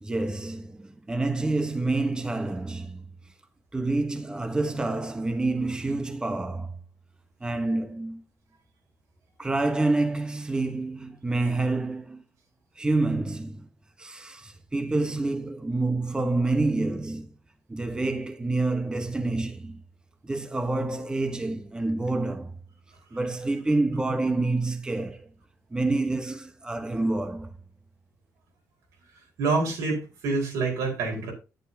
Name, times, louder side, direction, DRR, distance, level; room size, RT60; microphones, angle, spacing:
voice 1, 0.0-3.0 3.7-6.8 7.4-8.2 9.4-12.2 12.8-13.7 14.0-17.3 17.7-19.8 20.2-22.6 23.1-25.3 25.7-27.5, right 2 dB, 15° right, 1.1 m, -28 dB
voice 2, 29.4-31.3, right 3 dB, 90° right, 4.6 m, -27 dB
10.0 x 9.0 x 2.8 m
cardioid pair, 95°, 5 cm